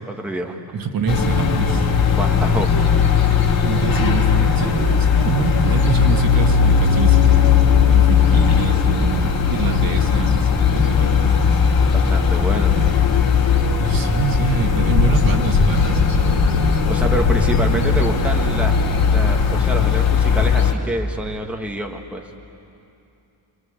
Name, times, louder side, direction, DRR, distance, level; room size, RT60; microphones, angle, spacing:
voice 1, 0.1-0.6 2.1-2.7 11.9-12.7 16.9-18.8 19.1-22.2, right 1 dB, 5° right, 2 dB, 1.5 m, -27 dB
voice 2, 0.7-1.8 3.0-3.1 3.6-7.6 7.9-11.3 11.8-11.9 12.7-13.0 13.8-16.8 17.7-17.8, right 5 dB, 50° right, 4 dB, 2.0 m, -25 dB
sound 1, 1.1-20.7, left 6 dB, 50° left, 2.8 m, -17 dB
26.0 x 25.0 x 8.2 m, 2.7 s
cardioid pair, 140°, 44 cm